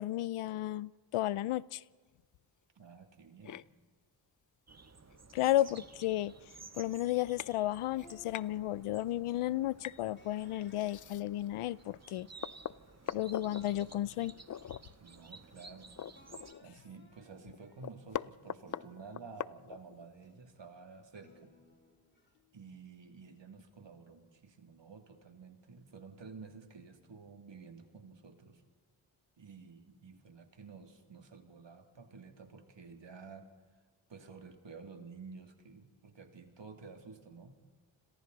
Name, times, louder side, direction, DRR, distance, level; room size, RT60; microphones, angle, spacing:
voice 1, 0.0-1.8 5.3-6.3 6.8-12.3 13.1-14.3, left 14 dB, 85° left, 21 dB, 0.6 m, -33 dB
voice 2, 2.7-3.6 15.0-15.9 16.6-21.5 22.5-28.6 29.4-33.5 34.1-37.6, right 4 dB, 60° right, 5 dB, 2.7 m, -52 dB
sound 1, 3.4-3.6 5.1-5.2 5.7-5.8 6.0-6.3 6.9-7.0 7.4-7.5 7.9-8.5 9.8-10.0 10.7-11.5 12.0-12.1 12.4-13.6 14.5-14.8 15.2-15.3 15.6-16.8 17.1-17.2 17.5-20.1, left 9 dB, 40° left, 0.5 m, -42 dB
sound 2, 4.7-16.5, right 4 dB, 30° right, 1.5 m, -55 dB
sound 3, 5.3-7.5 8.0-9.4 10.2-13.1 13.4-15.8 16.1-18.1 18.6-20.6 21.2-22.3, left 2 dB, 20° left, 3.5 m, -64 dB
30.0 x 22.0 x 4.1 m, 1.5 s
cardioid pair, 45°, 49 cm